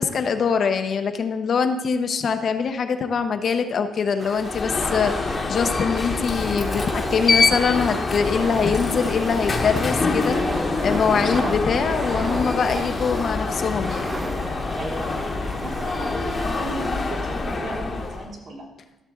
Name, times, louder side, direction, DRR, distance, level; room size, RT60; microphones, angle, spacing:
voice 1, 0.0-10.4 10.8-14.1, left 6 dB, 55° left, 7 dB, 0.7 m, -23 dB
sound 1, 4.2-17.1, right 3 dB, 25° right, 0.4 m, -35 dB
Alarm, 4.3-18.3, left 4 dB, 35° left, 1.1 m, -26 dB
sound 2, 6.0-17.6, left 1 dB, ahead, 0.7 m, -40 dB
voice 2, 11.3-12.1 12.7-12.9 14.8-18.6, right 2 dB, 60° right, -4 dB, 3.1 m, -35 dB
13.5 x 6.6 x 3.7 m, 0.99 s
cardioid pair, 90°, 0 cm